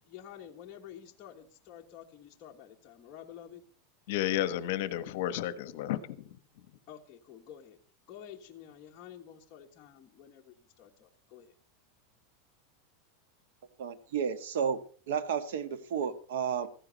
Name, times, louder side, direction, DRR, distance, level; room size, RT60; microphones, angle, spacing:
voice 1, 0.0-3.6 6.9-7.8 8.1-11.5, left 10 dB, 25° left, 1.4 m, -50 dB
voice 2, 4.1-6.3, left 12 dB, 55° left, 1.1 m, -32 dB
voice 3, 13.8-14.8 15.1-16.7, right 7 dB, 80° right, 1.6 m, -32 dB
15.5 x 14.5 x 4.1 m
supercardioid pair, 175°, 0 cm